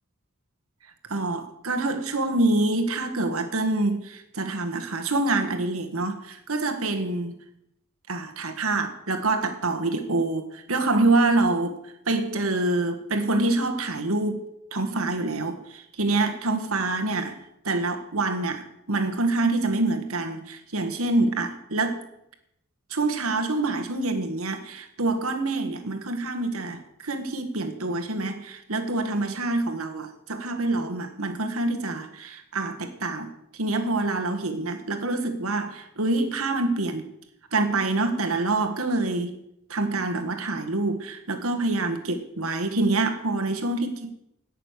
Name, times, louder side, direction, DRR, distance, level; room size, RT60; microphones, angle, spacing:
voice 1, 1.1-7.3 8.1-11.8 12.1-14.5 14.7-17.4 17.7-22.1 22.9-37.0 37.5-39.3 39.7-44.2, right 2 dB, 80° right, 5 dB, 1.8 m, -26 dB
17.5 x 6.7 x 6.7 m, 0.79 s
head